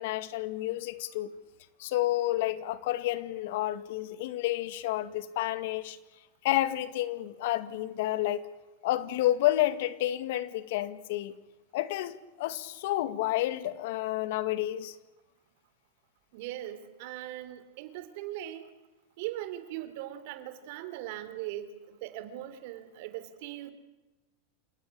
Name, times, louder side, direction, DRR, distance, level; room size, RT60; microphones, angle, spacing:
voice 1, 0.0-1.3 1.8-6.0 6.4-8.4 8.8-11.3 11.7-15.0, left 14 dB, 65° left, 2.0 m, -30 dB
voice 2, 16.3-18.6 19.2-23.7, right 13 dB, 60° right, 3.4 m, -40 dB
28.5 x 17.5 x 8.5 m
hypercardioid pair, 115°, 0 cm